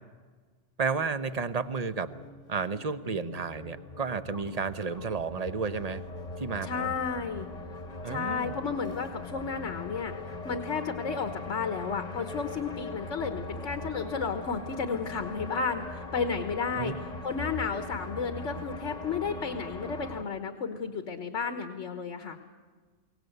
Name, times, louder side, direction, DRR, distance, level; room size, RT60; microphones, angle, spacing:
voice 1, 0.8-2.1 2.5-6.0 6.4-6.9 8.0-8.5 16.8-17.0, right 5 dB, 40° right, 12 dB, 0.8 m, -32 dB
sound 1, 1.3-20.2, left 2 dB, 35° left, 1.2 m, -41 dB
voice 2, 6.6-7.5 8.0-10.1 10.4-16.9 17.2-22.4, left 5 dB, 80° left, 8 dB, 1.5 m, -32 dB
23.0 x 18.0 x 8.0 m, 1.5 s
omnidirectional pair, 1.2 m